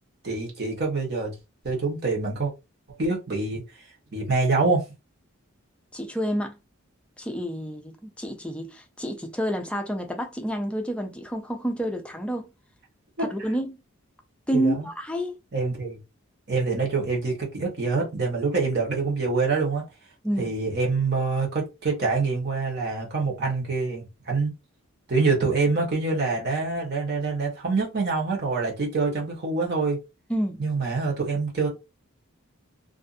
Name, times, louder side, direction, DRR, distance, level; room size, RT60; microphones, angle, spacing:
voice 1, 0.2-1.3 1.6-2.5 3.0-3.6 4.1-4.8 13.2-13.3 14.5-14.9 15.5-16.0 16.5-19.8 20.4-24.5 25.1-30.0 30.6-31.7, right 3 dB, 50° right, 1.0 m, -25 dB
voice 2, 5.9-6.6 7.2-12.5 13.2-13.8 14.5-15.4 20.2-20.5 30.3-30.6, equal, 5° left, 0.4 m, -29 dB
2.5 x 2.4 x 2.5 m
head